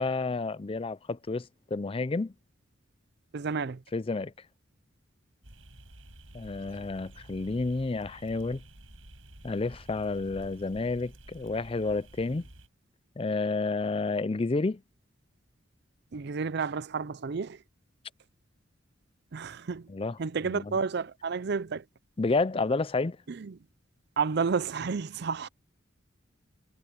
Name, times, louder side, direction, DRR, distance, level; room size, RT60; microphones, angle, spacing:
voice 1, 0.0-2.3 3.9-4.3 6.3-8.6 9.4-12.5 13.2-14.8 19.9-20.2 20.5-20.8 22.2-23.2, left 3 dB, 30° left, 0.4 m, -30 dB
voice 2, 3.3-3.8 16.1-17.6 19.3-19.9 20.2-21.8 23.3-23.6 24.2-25.5, right 5 dB, 55° right, 0.5 m, -31 dB
sound 1, 5.4-12.7, right 1 dB, 85° right, 6.6 m, -51 dB
head